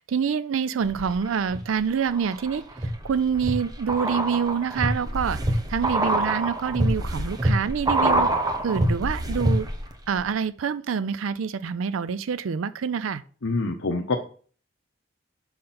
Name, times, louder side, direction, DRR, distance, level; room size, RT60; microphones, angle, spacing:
voice 1, 0.0-8.3 8.6-9.7 10.1-13.2, right 6 dB, 85° right, 0.4 m, -26 dB
sound 1, 0.9-1.6 2.1-9.9 10.2-10.3, right 1 dB, 20° right, 0.9 m, -26 dB
voice 2, 13.4-14.2, left 3 dB, 85° left, 0.8 m, -25 dB
6.5 x 5.7 x 4.2 m
head